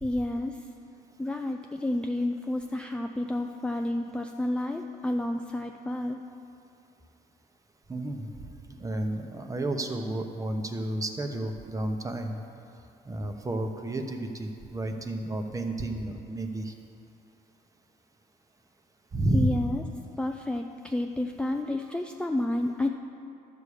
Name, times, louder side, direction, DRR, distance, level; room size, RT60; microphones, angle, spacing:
voice 1, 0.0-0.6 1.2-6.2 19.3-19.8 20.2-22.9, left 1 dB, 5° left, 3 dB, 0.4 m, -30 dB
voice 2, 7.9-8.3 8.7-12.4 13.1-16.7 19.1-19.6, right 1 dB, 20° right, 5 dB, 0.9 m, -31 dB
12.0 x 7.0 x 4.9 m, 2.7 s
cardioid pair, 110°, 17 cm